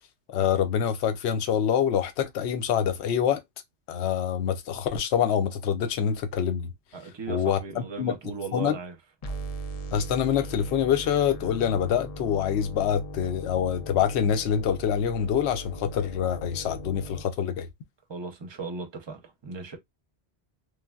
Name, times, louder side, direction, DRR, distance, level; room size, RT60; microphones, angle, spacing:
voice 1, 0.3-3.4 3.9-6.7 7.3-8.1 8.5-8.8 9.9-17.7, left 8 dB, 80° left, 0.8 m, -26 dB
voice 2, 6.9-8.9 18.1-19.8, right 4 dB, 35° right, 0.5 m, -37 dB
sound 1, 9.2-17.2, right 1 dB, 60° left, 0.4 m, -39 dB
3.3 x 2.2 x 2.2 m
omnidirectional pair, 1.1 m